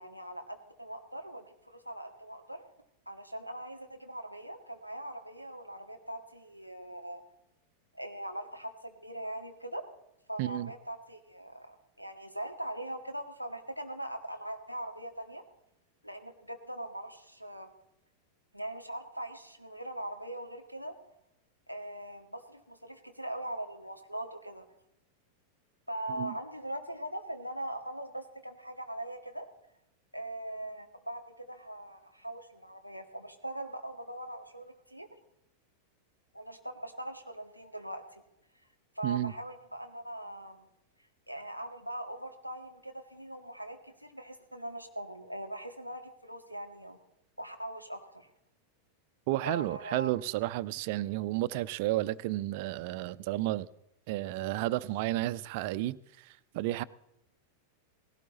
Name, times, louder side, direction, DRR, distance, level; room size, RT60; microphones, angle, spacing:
voice 1, 0.0-2.7 3.1-7.2 7.9-9.9 10.3-15.4 16.0-17.7 18.5-21.0 21.7-24.7 25.9-29.5 30.1-35.1 36.3-38.2 39.0-40.7 41.3-47.0 47.4-48.3 49.4-50.1, right 1 dB, 90° left, 1.8 m, -41 dB
voice 2, 10.4-10.7 26.2-26.3 39.0-39.3 49.3-53.7 54.1-56.8, right 16 dB, 50° right, 0.6 m, -32 dB
18.5 x 17.0 x 4.0 m
figure-of-eight pair, 90°, 0 cm